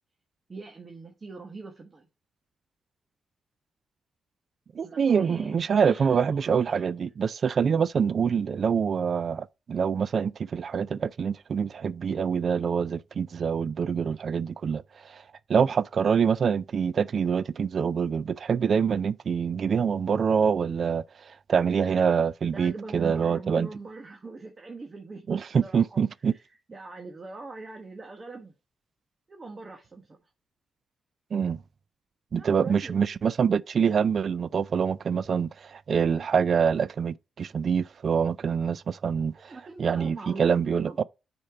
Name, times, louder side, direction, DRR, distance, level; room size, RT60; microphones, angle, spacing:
voice 1, 0.5-2.1 4.8-6.9 22.5-25.3 25.6-26.4 26.7-28.5 29.3-30.2 32.4-32.9 39.5-41.0, right 3 dB, 35° right, 1.2 m, -42 dB
voice 2, 4.8-14.8 15.1-15.2 15.5-21.0 21.5-23.7 25.3-26.3 31.3-31.6 32.3-39.5 39.8-41.0, right 6 dB, 55° right, 0.3 m, -25 dB
6.5 x 4.4 x 4.7 m
cardioid pair, 80°, 0 cm